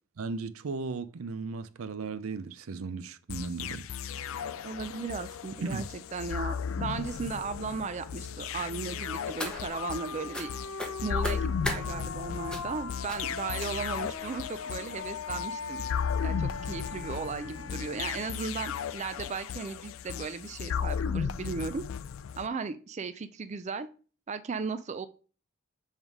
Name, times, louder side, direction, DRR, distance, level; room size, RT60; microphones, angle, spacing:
voice 1, 0.2-3.8 5.6-5.8, right 4 dB, 85° right, 0.5 m, -36 dB
sound 1, 3.3-22.5, left 7 dB, 70° left, 0.4 m, -35 dB
sound 2, 4.1-18.3, left 5 dB, 90° left, 0.7 m, -42 dB
voice 2, 4.6-10.5 11.0-15.8 16.2-21.8 22.4-23.9 24.3-25.1, right 4 dB, 35° right, 0.4 m, -36 dB
sound 3, 9.0-10.0 10.3-10.5 10.8-11.8 12.5-12.8 13.1-13.3 13.6-14.0 14.7-14.8 15.2-15.3 15.6-15.7, left 1 dB, 5° left, 0.8 m, -37 dB
7.3 x 3.6 x 4.7 m
head